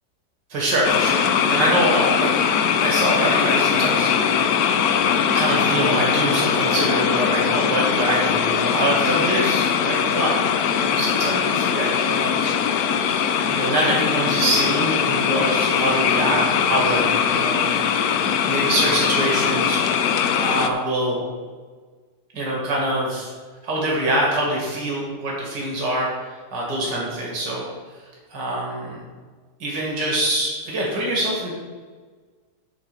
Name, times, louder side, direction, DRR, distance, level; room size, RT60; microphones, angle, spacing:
voice 1, 0.5-2.3 2.8-4.9 5.3-10.4 10.6-12.8 13.5-17.7 18.4-19.8 20.3-21.2 22.3-23.3 23.6-27.7 28.3-29.0 29.6-31.5, right 1 dB, 75° right, -3 dB, 2.7 m, -24 dB
sound 1, 0.8-20.7, left 7 dB, 70° left, 1.0 m, -21 dB
9.9 x 4.0 x 6.9 m, 1.4 s
omnidirectional pair, 1.9 m